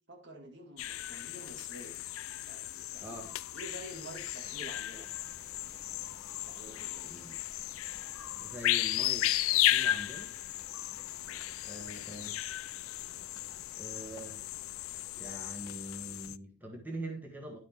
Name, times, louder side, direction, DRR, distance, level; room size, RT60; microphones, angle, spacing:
voice 1, 0.1-2.0 2.5-3.2 3.5-5.1 6.3-7.1 11.2-11.4, right 1 dB, 55° right, 2 dB, 2.2 m, -49 dB
sound 1, 0.8-16.4, left 14 dB, 80° left, 0.4 m, -35 dB
voice 2, 3.0-3.3 7.0-7.4 8.4-10.3 11.6-12.4 13.7-14.4 15.2-17.6, right 1 dB, 10° right, 0 dB, 1.7 m, -44 dB
sound 2, 4.4-16.0, left 2 dB, 15° left, 1.5 m, -59 dB
11.5 x 6.5 x 3.6 m, 0.33 s
head